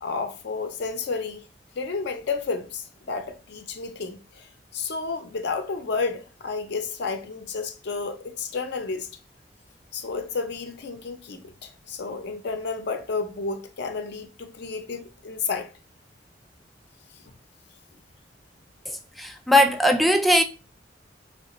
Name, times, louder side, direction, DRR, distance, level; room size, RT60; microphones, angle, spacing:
voice 1, 0.0-1.4 1.7-9.2 9.9-15.7, left 4 dB, 65° left, 0.5 m, -31 dB
voice 2, 18.9-20.4, left 1 dB, ahead, 0.3 m, -20 dB
3.2 x 3.2 x 2.9 m
head